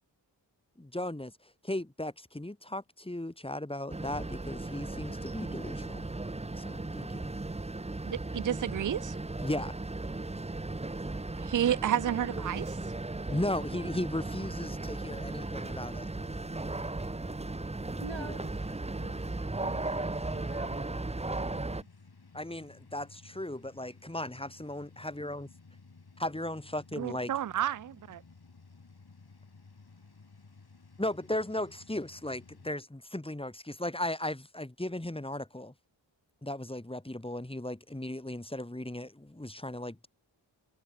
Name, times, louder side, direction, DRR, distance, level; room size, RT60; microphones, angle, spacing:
voice 1, 0.8-1.3 1.6-6.1 6.6-7.3 9.4-9.7 13.3-16.1 22.3-25.5 26.2-27.3 31.0-35.7 36.4-40.1, left 1 dB, 10° left, 2.0 m, -36 dB
sound 1, 3.9-21.8, right 2 dB, 15° right, 0.8 m, -36 dB
voice 2, 8.0-9.2 11.4-12.7 27.0-28.2, right 10 dB, 45° right, 0.5 m, -31 dB
sound 2, 14.3-32.7, left 4 dB, 55° left, 4.7 m, -56 dB
voice 3, 18.0-21.8, right 5 dB, 70° right, 5.9 m, -49 dB
wide cardioid pair, 70°, 46 cm